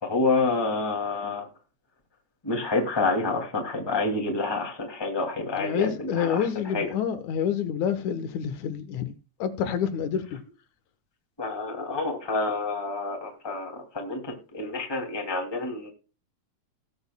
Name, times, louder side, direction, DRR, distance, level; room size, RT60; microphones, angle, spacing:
voice 1, 0.0-1.5 2.4-6.5 6.7-6.9 11.4-15.9, left 3 dB, 10° left, 2.2 m, -28 dB
voice 2, 5.5-9.1 9.4-10.4, left 8 dB, 75° left, 2.5 m, -28 dB
19.5 x 7.9 x 2.2 m
omnidirectional pair, 3.4 m